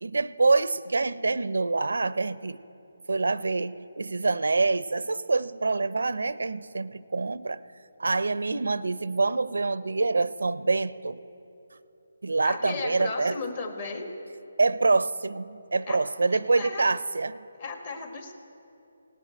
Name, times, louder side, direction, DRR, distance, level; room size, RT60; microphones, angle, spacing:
voice 1, 0.0-2.6 3.1-7.6 8.0-11.2 12.2-13.4 14.6-17.4, right 3 dB, 80° right, 17 dB, 0.4 m, -26 dB
voice 2, 12.4-14.1 15.9-16.0 16.6-16.9 17.6-18.3, left 4 dB, 35° left, 5 dB, 1.3 m, -34 dB
17.5 x 7.5 x 8.8 m, 2.9 s
hypercardioid pair, 165°, 0 cm